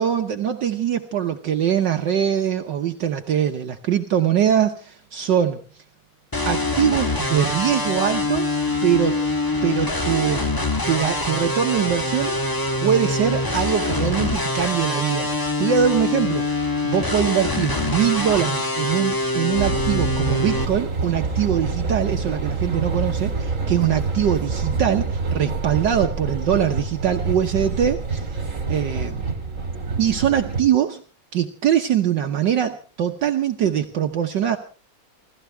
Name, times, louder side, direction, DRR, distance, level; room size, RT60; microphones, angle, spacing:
voice 1, 0.0-5.8 6.5-8.5 8.8-9.2 9.6-10.5 10.9-12.4 12.8-15.3 15.6-16.5 16.8-29.2 30.0-31.0 31.3-34.6, right 9 dB, 65° right, 5 dB, 1.6 m, -22 dB
sound 1, 6.3-20.7, left 2 dB, 15° left, 1.2 m, -24 dB
sound 2, 19.5-30.6, right 4 dB, 40° right, 2.6 m, -26 dB
28.5 x 14.0 x 3.4 m, 0.37 s
omnidirectional pair, 2.2 m